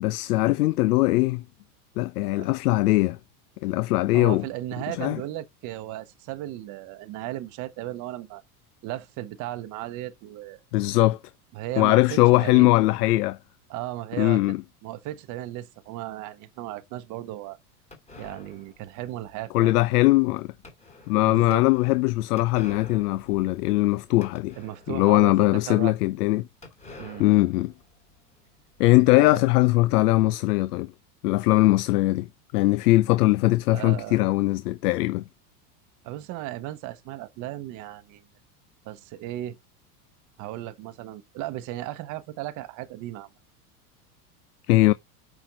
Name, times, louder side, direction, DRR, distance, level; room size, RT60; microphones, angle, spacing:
voice 1, 0.0-1.4 2.0-3.2 3.6-4.4 5.0-5.2 10.7-11.2 11.8-13.4 14.2-14.6 19.5-20.5 21.1-24.5 24.9-26.5 27.2-27.7 28.8-30.9 31.2-32.3 32.5-35.2 44.7-44.9, left 19 dB, 85° left, 0.6 m, -21 dB
voice 2, 4.1-8.4 8.8-10.6 11.5-12.8 13.7-14.4 14.8-17.6 18.2-19.7 21.2-21.6 24.6-26.0 27.0-27.3 29.1-29.4 33.7-34.2 36.0-38.2 38.8-39.6 40.4-43.3, right 15 dB, 40° right, 0.9 m, -36 dB
sound 1, 17.9-25.2 25.6-25.7 25.8-25.9 26.6-29.4, left 3 dB, 15° left, 1.9 m, -48 dB
6.0 x 4.4 x 5.1 m
supercardioid pair, 130°, 45 cm